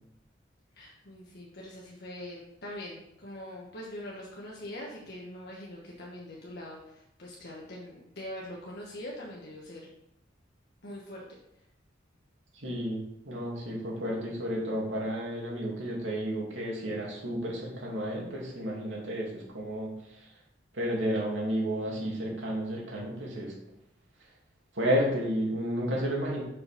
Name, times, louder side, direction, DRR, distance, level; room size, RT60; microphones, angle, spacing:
voice 1, 0.7-9.9 10.8-11.2, left 1 dB, 60° left, -3 dB, 1.4 m, -43 dB
voice 2, 12.5-19.9 20.7-23.5 24.7-26.4, equal, 90° right, -3 dB, 2.7 m, -32 dB
6.2 x 5.4 x 5.9 m, 0.81 s
head